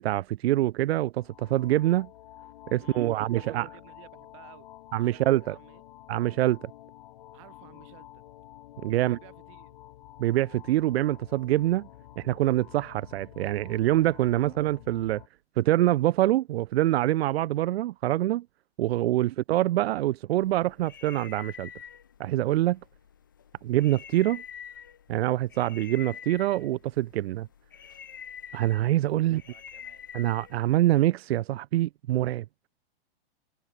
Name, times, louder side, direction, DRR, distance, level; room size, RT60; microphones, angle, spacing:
voice 1, 0.0-2.1 2.7-3.7 4.9-5.5 6.1-6.7 8.8-9.2 10.2-11.9 12.2-15.2 15.6-18.4 18.8-21.7 22.2-22.8 23.6-24.4 25.1-27.5 28.5-29.4 30.1-32.4, right 15 dB, 90° right, 0.5 m, -25 dB
sound 1, 1.2-15.3, left 14 dB, 45° left, 7.5 m, -50 dB
voice 2, 2.8-4.7 5.0-5.8 7.3-8.2 8.9-9.8 14.3-14.5 19.1-19.4 29.2-30.1, right 24 dB, 30° right, 3.4 m, -55 dB
sound 2, 20.4-31.0, left 8 dB, 20° left, 0.3 m, -47 dB
supercardioid pair, 180°, 30 cm